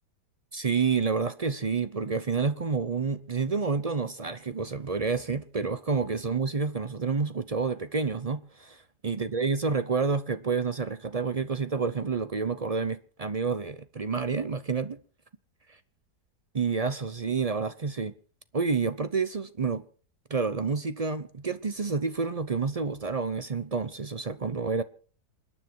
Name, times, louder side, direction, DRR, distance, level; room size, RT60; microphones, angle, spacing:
voice 1, 0.5-15.0 16.5-18.1 18.5-19.9 20.3-24.8, right 5 dB, 45° right, 0.4 m, -29 dB
28.0 x 10.0 x 4.6 m
omnidirectional pair, 1.8 m